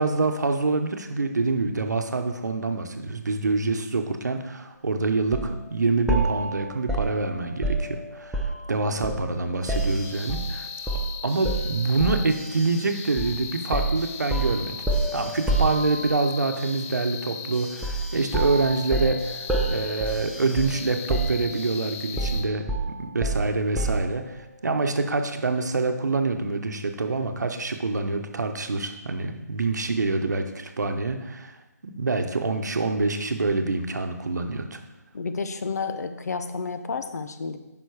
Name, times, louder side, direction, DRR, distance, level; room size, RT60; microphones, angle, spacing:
voice 1, 0.0-10.7 11.2-14.7 15.1-22.7 23.0-31.5 31.8-34.8, right 3 dB, 80° right, 6 dB, 0.9 m, -26 dB
sound 1, 5.3-5.5 6.1-8.7 9.0-10.5 10.9-11.1 11.4-12.3 13.2-13.4 13.7-16.3 17.8-18.1 18.3-20.8 21.1-21.7 22.2-24.1, right 2 dB, 5° right, 0.6 m, -28 dB
sound 2, 9.6-22.4, left 6 dB, 20° left, 2.8 m, -38 dB
voice 2, 35.1-37.6, left 4 dB, 70° left, 9 dB, 0.7 m, -31 dB
7.1 x 5.5 x 4.8 m, 1.0 s
hypercardioid pair, 160°, 9 cm